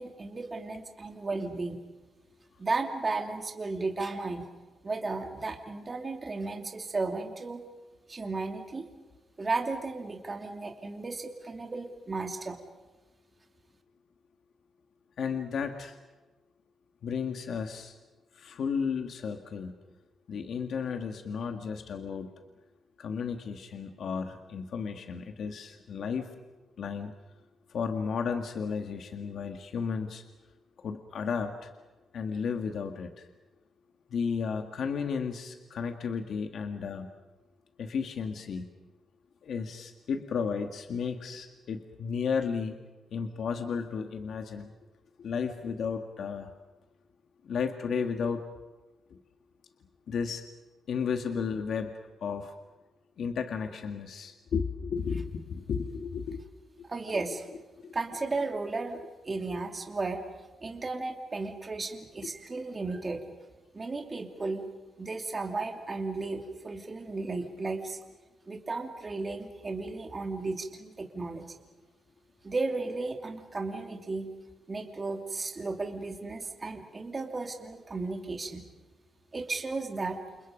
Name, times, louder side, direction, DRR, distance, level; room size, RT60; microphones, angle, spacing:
voice 1, 0.0-1.8 2.6-4.5 4.8-7.6 8.1-8.9 9.4-12.6 56.8-57.5 57.9-59.0 59.2-60.2 60.6-63.3 63.7-64.7 65.0-68.0 68.5-71.4 72.4-74.3 74.7-78.6 79.3-80.2, right 3 dB, 25° right, 2 dB, 2.8 m, -34 dB
voice 2, 15.2-16.0 17.0-17.9 18.4-19.7 20.3-22.3 23.0-26.3 26.8-27.1 27.7-30.2 30.8-31.7 32.1-33.3 34.1-37.1 37.8-38.7 39.4-42.7 43.1-44.7 45.2-46.5 47.4-48.4 49.1-49.2 50.1-50.5 50.9-51.9 52.2-52.5 53.2-56.4 57.1-57.2 57.8-57.9, left 6 dB, 60° left, 5 dB, 1.9 m, -33 dB
29.0 x 28.5 x 5.3 m, 1.2 s
cardioid pair, 130°, 0 cm